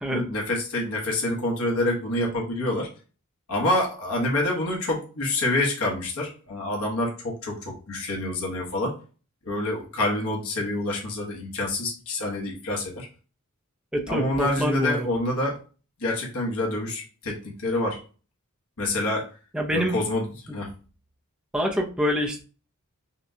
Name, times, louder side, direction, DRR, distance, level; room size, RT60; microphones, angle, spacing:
voice 1, 0.1-2.9 3.5-9.0 9.4-13.1 14.1-15.6 16.0-18.0 18.8-19.3 19.7-20.7, left 1 dB, 75° left, -1 dB, 1.1 m, -27 dB
voice 2, 13.9-15.1 19.5-20.0 21.5-22.4, equal, 5° right, 0 dB, 0.6 m, -26 dB
5.6 x 2.3 x 2.7 m, 0.37 s
head